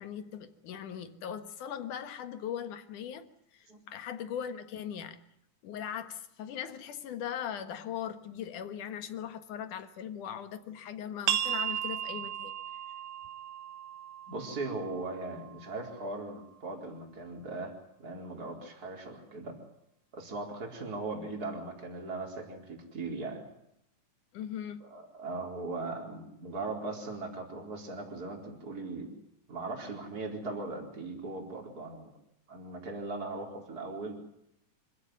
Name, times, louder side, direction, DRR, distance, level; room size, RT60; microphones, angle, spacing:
voice 1, 0.0-3.3 3.5-5.2 5.6-12.5 24.3-24.8, left 9 dB, 80° left, 3.0 m, -39 dB
sound 1, 11.3-16.6, right 10 dB, 60° right, 1.4 m, -36 dB
voice 2, 14.3-17.7 18.0-19.6 20.1-23.5 24.8-29.2 29.5-32.1 32.5-34.2, right 3 dB, 30° right, 4.6 m, -39 dB
26.0 x 15.5 x 9.3 m
omnidirectional pair, 3.5 m